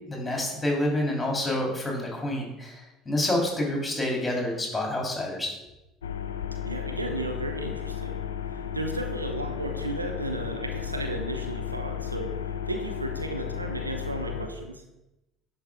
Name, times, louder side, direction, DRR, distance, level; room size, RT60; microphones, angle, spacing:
voice 1, 0.1-5.5, left 1 dB, 15° left, -1 dB, 3.0 m, -28 dB
sound 1, 6.0-14.5, left 8 dB, 75° left, 0.4 m, -34 dB
voice 2, 6.6-14.8, right 2 dB, 85° right, 5 dB, 0.6 m, -34 dB
10.5 x 5.1 x 3.6 m, 0.94 s
figure-of-eight pair, 60°, 0 cm